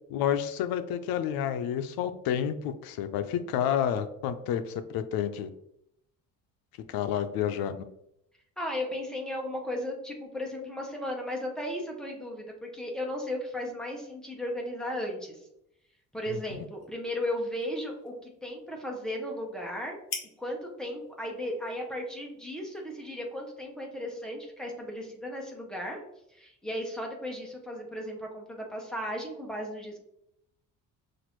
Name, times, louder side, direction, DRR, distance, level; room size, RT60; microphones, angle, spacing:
voice 1, 0.1-5.5 6.9-7.8 16.3-16.7, left 9 dB, 90° left, 10 dB, 0.5 m, -30 dB
voice 2, 8.6-15.4 16.1-20.0 20.4-26.0 26.3-30.0, left 1 dB, ahead, 0 dB, 0.6 m, -35 dB
sound 1, 15.8-23.5, left 5 dB, 45° left, 0.8 m, -48 dB
5.9 x 2.5 x 3.0 m, 0.79 s
cardioid pair, 165°, 34 cm